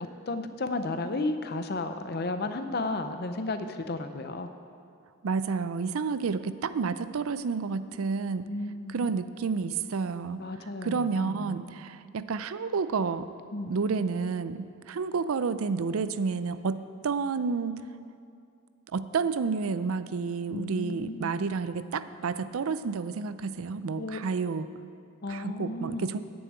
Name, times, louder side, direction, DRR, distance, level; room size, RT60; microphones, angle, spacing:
voice 1, 0.3-4.5 8.5-9.2 10.4-11.6 13.5-13.7 20.5-21.3 24.0-24.2 25.2-26.1, left 2 dB, 50° left, 8 dB, 0.6 m, -33 dB
voice 2, 5.2-8.5 8.9-10.4 10.8-13.3 13.7-17.8 18.9-24.7 25.3-26.2, right 5 dB, 85° right, 13 dB, 0.5 m, -30 dB
9.5 x 7.0 x 8.7 m, 2.4 s
head